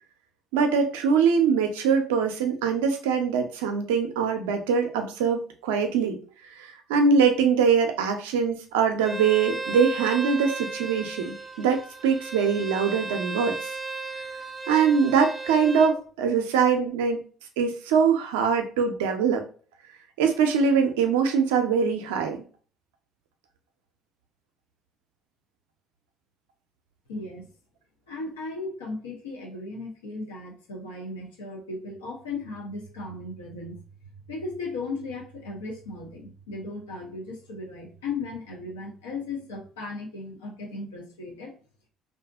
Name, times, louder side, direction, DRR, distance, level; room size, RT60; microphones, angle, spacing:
voice 1, 0.5-6.2 6.5-13.7 14.7-17.2 17.6-19.4 20.2-22.4, right 6 dB, 85° right, 5 dB, 0.4 m, -23 dB
Bowed string instrument, 9.0-15.9, right 3 dB, 20° right, 0.4 m, -35 dB
voice 2, 27.1-27.5 28.1-33.8 34.3-41.5, left 3 dB, 90° left, 0 dB, 0.6 m, -36 dB
2.6 x 2.4 x 2.3 m, 0.40 s
hypercardioid pair, 60°, 0 cm